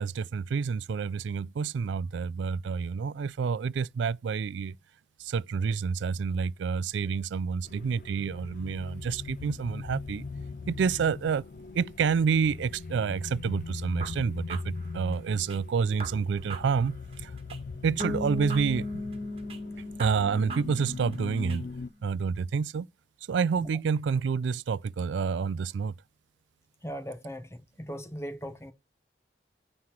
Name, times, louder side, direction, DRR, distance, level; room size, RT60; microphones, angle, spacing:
voice 1, 0.0-4.8 5.2-10.3 10.7-11.5 11.7-17.3 17.8-19.0 20.0-21.7 22.0-22.9 23.3-25.9, right 6 dB, 80° right, 0.3 m, -28 dB
sound 1, 7.7-21.9, left 4 dB, 50° left, 0.4 m, -41 dB
sound 2, 14.0-15.6 16.0-17.6 18.0-19.6 20.0-21.6, right 3 dB, 30° right, 1.8 m, -43 dB
Bass guitar, 18.0-21.7, left 2 dB, 10° right, 2.1 m, -37 dB
voice 2, 26.8-28.7, equal, 15° left, 0.9 m, -39 dB
9.5 x 3.2 x 5.8 m
head